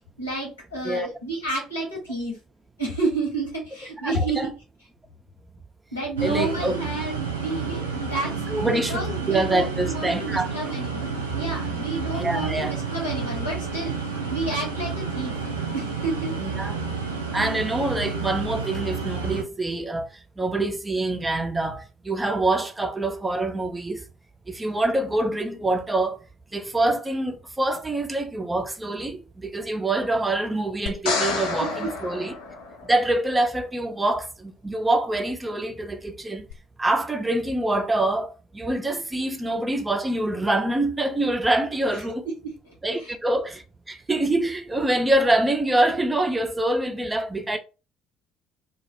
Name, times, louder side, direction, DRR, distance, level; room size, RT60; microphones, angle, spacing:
voice 1, 0.2-2.3 2.8-4.5 5.9-8.3 8.6-13.9 14.3-15.4 15.7-16.3 31.8-31.9 42.2-42.3 42.6-43.1, right 2 dB, 85° left, 1.0 m, -30 dB
voice 2, 4.0-4.5 6.2-6.8 8.5-10.7 12.1-12.8 16.4-16.8 17.3-20.1 20.4-24.0 24.5-26.2 26.5-32.3 32.8-36.5 36.8-42.3 42.8-47.6, right 2 dB, 15° right, 0.4 m, -25 dB
sound 1, 6.2-19.4, right 5 dB, 80° right, 0.4 m, -30 dB
sound 2, 30.9-33.2 36.5-36.6, left 4 dB, 65° left, 0.6 m, -29 dB
2.3 x 2.1 x 2.7 m
figure-of-eight pair, 55°, 0 cm